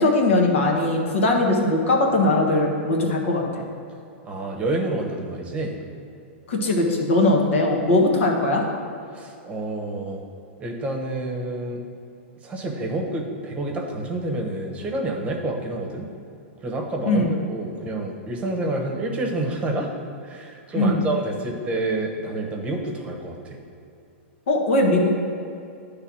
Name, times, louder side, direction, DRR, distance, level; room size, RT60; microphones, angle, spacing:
voice 1, 0.0-3.4 6.5-8.6 17.0-17.3 20.7-21.0 24.5-25.1, left 2 dB, 75° left, 0 dB, 1.4 m, -20 dB
voice 2, 4.2-5.8 9.1-10.2 10.6-11.8 12.4-16.1 16.6-19.9 20.2-23.6, right 2 dB, 20° right, 1 dB, 1.0 m, -28 dB
9.8 x 3.4 x 6.1 m, 2.6 s
hypercardioid pair, 140°, 7 cm